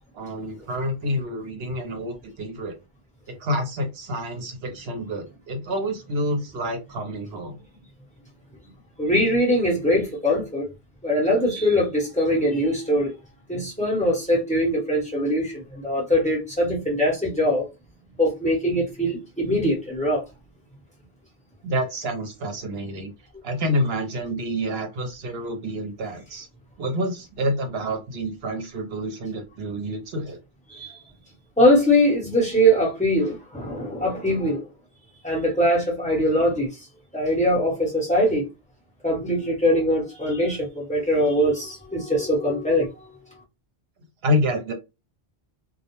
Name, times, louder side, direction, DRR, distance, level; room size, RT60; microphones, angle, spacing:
voice 1, 0.1-2.7 3.3-7.5 21.6-23.1 23.4-26.5 26.8-30.4 44.2-44.7, equal, 65° right, 0.9 m, -28 dB
voice 2, 9.0-10.7 11.0-13.1 13.5-15.5 15.8-17.6 18.2-20.2 30.7-30.9 31.6-34.6 35.2-36.7 37.1-38.5 39.0-42.9, equal, 5° left, 0.9 m, -22 dB
2.3 x 2.0 x 2.9 m
omnidirectional pair, 1.1 m